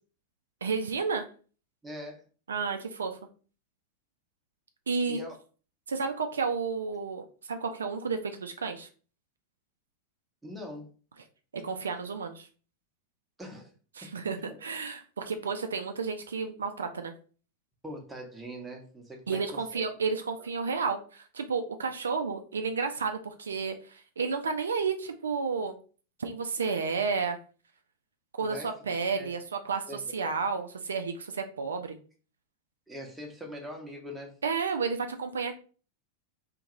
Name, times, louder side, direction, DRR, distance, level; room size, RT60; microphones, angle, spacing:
voice 1, 0.6-1.3 2.5-3.2 4.9-5.2 5.9-8.9 11.6-12.5 14.0-17.1 19.3-25.8 26.2-27.4 28.4-32.0 34.4-35.5, right 5 dB, 70° right, 6 dB, 0.3 m, -31 dB
voice 2, 1.8-2.2 5.1-5.4 10.4-10.9 13.4-13.7 14.0-14.1 14.5-14.6 17.8-19.8 20.4-20.5 28.4-28.7 29.2-29.3 29.9-30.3 32.9-34.4, equal, 5° right, 0 dB, 0.8 m, -42 dB
2.9 x 2.7 x 2.5 m, 0.39 s
figure-of-eight pair, 90°, 0 cm